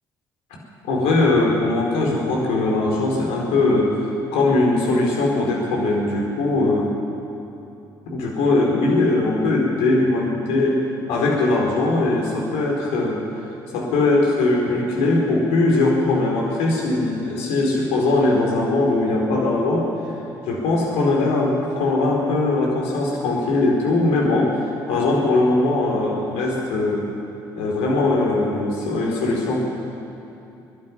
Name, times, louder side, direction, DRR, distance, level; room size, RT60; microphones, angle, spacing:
voice 1, 0.9-4.0 4.3-6.9 8.1-10.8 11.1-13.2 13.7-19.9 20.5-24.6 24.9-27.1 27.6-29.7, left 2 dB, 70° left, -2 dB, 4.6 m, -20 dB
25.0 x 12.0 x 9.8 m, 2.8 s
hypercardioid pair, 50°, 11 cm